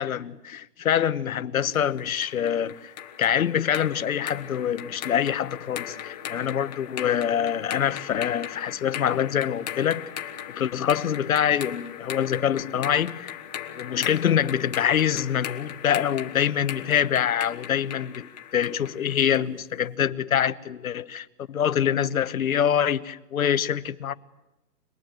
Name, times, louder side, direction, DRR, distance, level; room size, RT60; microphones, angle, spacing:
voice 1, 0.0-2.9 3.2-10.0 10.5-13.3 13.7-24.1, left 9 dB, 60° left, 1.2 m, -25 dB
sound 1, 1.7-19.5, left 10 dB, 25° left, 1.3 m, -38 dB
26.5 x 21.0 x 9.1 m
hypercardioid pair, 165°, 47 cm